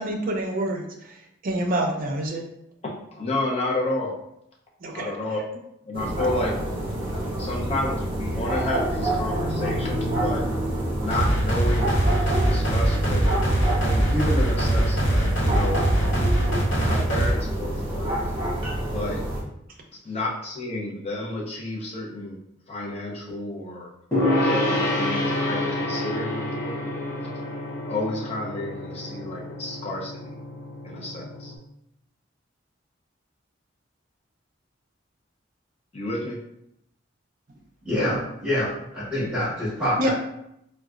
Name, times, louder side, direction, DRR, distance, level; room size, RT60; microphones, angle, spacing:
voice 1, 0.0-2.4 4.8-5.1 40.0-40.1, right 1 dB, 45° right, 1 dB, 0.5 m, -27 dB
voice 2, 3.1-4.1 4.9-5.4 5.8-6.6 7.4-10.4 11.0-13.2 13.8-16.2 16.8-18.1 18.9-19.2 20.0-22.4 22.7-23.9 24.4-27.0 27.9-30.3 30.8-31.5 35.9-36.4, left 1 dB, 35° left, -3 dB, 0.6 m, -31 dB
sound 1, 5.9-19.4, right 1 dB, 25° right, 1.0 m, -28 dB
sound 2, 11.1-17.3, right 1 dB, 65° left, 0.8 m, -22 dB
Gong, 24.1-31.6, left 1 dB, 15° left, 1.0 m, -28 dB
voice 3, 37.8-40.1, left 1 dB, 5° right, -13 dB, 1.4 m, -26 dB
3.9 x 2.2 x 2.4 m, 0.78 s
head